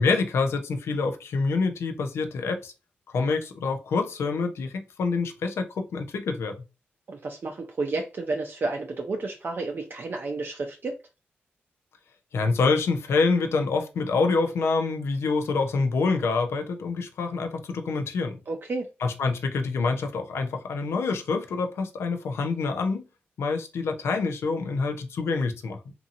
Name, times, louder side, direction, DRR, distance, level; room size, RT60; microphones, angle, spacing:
voice 1, 0.0-2.7 3.1-6.5 12.3-18.4 19.0-23.0 23.4-25.8, left 4 dB, 85° left, 0.5 m, -26 dB
voice 2, 7.1-10.9 18.5-18.9, right 3 dB, 55° right, 0.4 m, -31 dB
2.7 x 2.6 x 2.5 m
cardioid pair, 65°, 4 cm